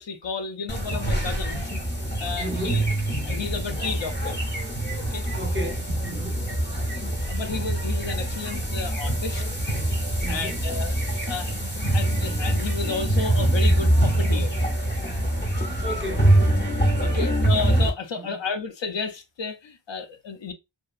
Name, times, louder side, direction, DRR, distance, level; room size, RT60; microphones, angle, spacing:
voice 1, 0.0-1.6 2.2-2.8 3.2-4.4 5.1-5.3 7.0-9.5 10.3-11.0 11.3-11.5 11.9-14.5 17.0-20.5, left 4 dB, 65° left, 0.6 m, -32 dB
sound 1, 0.7-17.9, right 1 dB, 25° left, 0.7 m, -24 dB
voice 2, 2.4-2.9 5.4-6.5 10.2-10.6 15.8-16.4 17.0-17.3 18.2-18.4, right 1 dB, 25° right, 0.6 m, -34 dB
2.6 x 2.2 x 2.3 m
wide cardioid pair, 45°, 48 cm